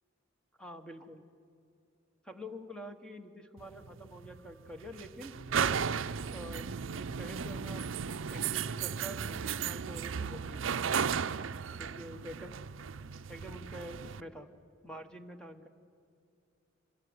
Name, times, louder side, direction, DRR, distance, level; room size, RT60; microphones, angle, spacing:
voice 1, 0.6-1.2 2.2-5.4 6.3-7.9 8.3-11.1 11.8-12.6 13.3-14.5 14.8-15.7, equal, 5° left, 6 dB, 1.2 m, -47 dB
sound 1, 3.6-14.2, right 6 dB, 80° right, 0.6 m, -35 dB
25.0 x 20.5 x 9.5 m, 2.4 s
head